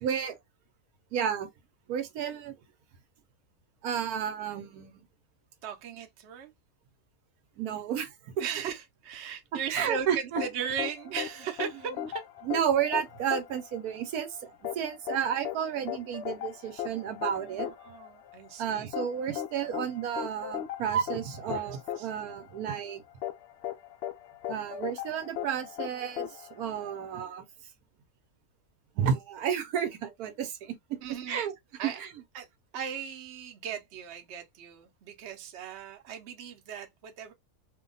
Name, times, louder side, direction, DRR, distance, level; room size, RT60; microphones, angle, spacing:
voice 1, 0.0-0.4 1.1-1.5 1.9-2.6 3.8-4.9 7.6-8.3 9.7-10.4 12.4-17.7 18.6-23.0 24.5-27.4 28.9-30.8 31.3-31.5 31.8-32.1, right 8 dB, 75° right, 1.1 m, -31 dB
voice 2, 5.6-6.5 8.4-12.2 17.3-18.9 21.5-21.7 22.0-22.1 31.0-31.4 31.8-32.0 32.3-32.5 32.7-37.3, right 8 dB, 55° right, 0.8 m, -38 dB
sound 1, 10.4-27.2, left 11 dB, 75° left, 0.6 m, -38 dB
2.7 x 2.2 x 3.8 m
omnidirectional pair, 1.6 m